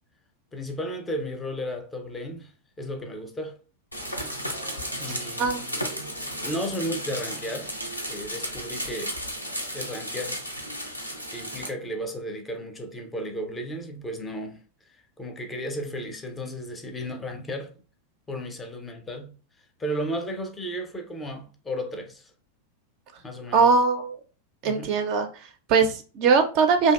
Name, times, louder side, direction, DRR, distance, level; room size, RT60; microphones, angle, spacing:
voice 1, 0.5-2.5 2.8-3.6 5.0-5.6 6.4-7.8 8.1-9.1 9.7-10.4 11.3-14.6 14.9-17.7 18.3-19.4 19.8-22.3 23.2-23.7 24.6-25.0, equal, 15° left, 0.5 m, -34 dB
sound 1, 3.9-11.7, equal, 90° left, 0.5 m, -34 dB
voice 2, 23.5-24.2 24.6-26.9, right 5 dB, 45° right, 0.4 m, -21 dB
2.6 x 2.2 x 2.2 m
figure-of-eight pair, 90°, 0 cm